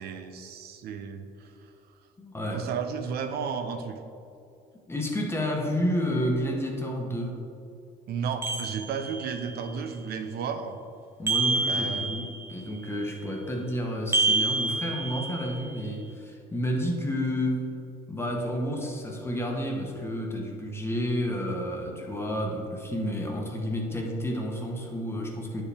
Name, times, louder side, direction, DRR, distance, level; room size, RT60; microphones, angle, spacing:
voice 1, 0.0-1.5 2.5-4.0 8.1-10.8 11.7-12.3, right 6 dB, 70° right, 7 dB, 0.7 m, -33 dB
voice 2, 2.2-2.7 4.9-7.4 11.2-17.7 18.1-25.6, equal, 15° left, 0 dB, 1.0 m, -30 dB
sound 1, 8.4-9.4 11.3-12.5 14.1-15.6, right 3 dB, 15° right, 0.8 m, -27 dB
9.7 x 4.8 x 3.4 m, 2.6 s
cardioid pair, 110°, 17 cm